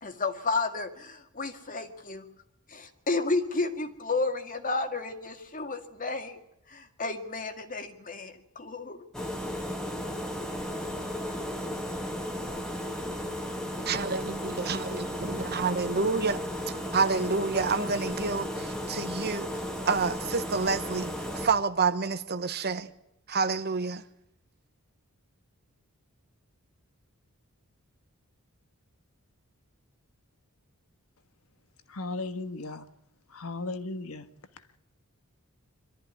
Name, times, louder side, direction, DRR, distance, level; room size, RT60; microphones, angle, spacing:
voice 1, 0.0-2.3 2.7-6.4 6.7-9.0, left 3 dB, 35° left, 2.1 m, -32 dB
sound 1, 9.1-21.5, left 1 dB, 5° left, 1.9 m, -34 dB
voice 2, 13.9-16.4 16.9-19.5 19.9-21.1 21.4-22.9 23.3-24.0, right 4 dB, 45° right, 1.1 m, -28 dB
voice 3, 31.9-32.9 33.3-34.3 34.5-34.8, left 3 dB, 70° left, 1.5 m, -36 dB
23.5 x 13.5 x 9.7 m
head